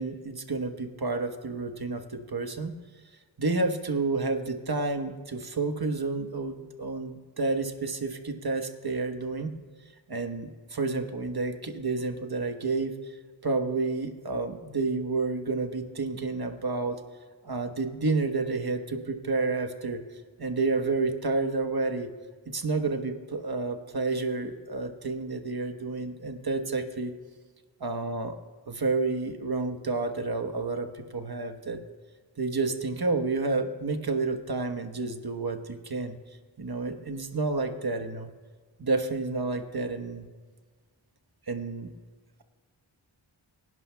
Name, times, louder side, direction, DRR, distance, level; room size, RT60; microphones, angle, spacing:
voice 1, 0.0-2.7 3.4-9.6 10.1-12.9 13.4-17.0 17.4-20.0 20.4-22.1 22.5-27.1 27.8-28.4 28.7-31.8 32.4-36.2 36.6-38.3 38.8-40.3 41.5-41.9, right 3 dB, 50° right, 6 dB, 1.2 m, -30 dB
25.0 x 11.0 x 2.3 m, 1.5 s
wide cardioid pair, 50°, 47 cm